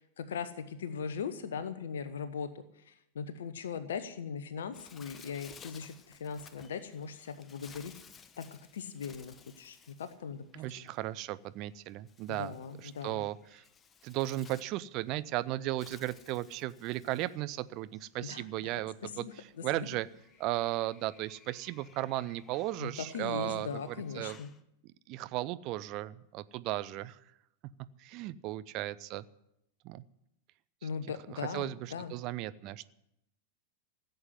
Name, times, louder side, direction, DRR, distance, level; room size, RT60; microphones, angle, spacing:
voice 1, 0.0-2.5 2.7-7.9 8.4-10.4 10.8-10.9 12.3-13.2 18.2-18.7 19.0-19.9 22.8-24.5 30.8-32.1, left 6 dB, 65° left, 12 dB, 0.9 m, -40 dB
Bird, 4.7-24.6, left 6 dB, 20° left, 1.0 m, -58 dB
voice 2, 10.5-13.6 14.0-20.1 20.4-24.4 25.1-27.2 28.0-29.2 29.8-30.0 30.8-30.9 31.3-32.9, right 16 dB, 40° right, 15 dB, 0.6 m, -36 dB
15.5 x 8.0 x 9.9 m, 0.80 s
figure-of-eight pair, 90°, 0 cm